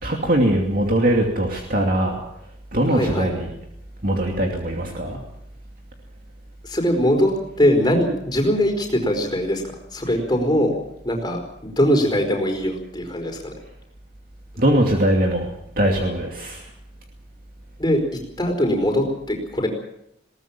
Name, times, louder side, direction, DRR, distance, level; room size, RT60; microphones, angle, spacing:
voice 1, 0.0-2.2 2.7-3.5 4.0-5.2 10.1-10.2 14.6-15.5 15.8-16.6, right 1 dB, 45° right, 1 dB, 2.6 m, -21 dB
voice 2, 2.9-3.3 6.6-7.3 7.6-9.6 9.9-10.7 11.0-13.5 17.8-18.0 18.4-19.7, equal, 20° left, 2 dB, 4.8 m, -21 dB
21.0 x 18.5 x 7.5 m, 0.77 s
head